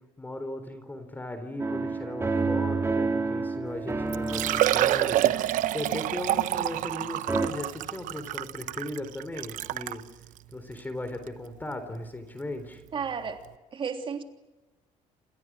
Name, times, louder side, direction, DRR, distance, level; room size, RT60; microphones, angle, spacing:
voice 1, 0.2-10.0 10.5-12.8, left 1 dB, 15° left, 9 dB, 3.9 m, -37 dB
sound 1, 1.6-7.0 7.3-7.5, right 3 dB, 20° right, 4.2 m, -30 dB
Liquid, 3.7-3.8 4.1-10.0 10.7-10.8 11.3-11.4 13.0-13.1 13.3-13.4, right 13 dB, 75° right, 1.0 m, -27 dB
voice 2, 12.9-13.4 13.7-14.2, right 6 dB, 40° right, 6 dB, 3.3 m, -32 dB
28.0 x 28.0 x 6.3 m, 1.1 s
cardioid pair, 115°, 14 cm